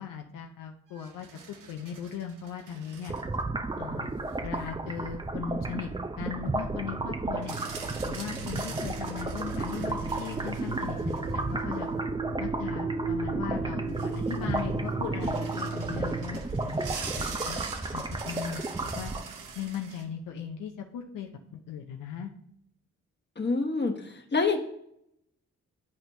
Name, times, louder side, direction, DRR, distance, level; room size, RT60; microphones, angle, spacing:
voice 1, 0.0-3.1 3.8-4.1 4.4-5.9 6.2-7.6 8.1-11.9 12.4-17.6 17.9-19.1 19.6-22.3, left 8 dB, 85° left, 4 dB, 0.6 m, -38 dB
sound 1, 0.9-3.4 4.0-4.1 7.4-11.8 13.4-13.5 13.7-14.7 15.2-20.0, right 5 dB, 80° right, 0.9 m, -44 dB
sound 2, 3.1-19.5, right 2 dB, 15° right, 0.5 m, -33 dB
sound 3, 4.9-16.2, right 4 dB, 60° right, 1.4 m, -37 dB
voice 2, 23.4-24.6, left 4 dB, 35° left, 4 dB, 1.3 m, -27 dB
11.0 x 4.3 x 2.7 m, 0.73 s
supercardioid pair, 45°, 32 cm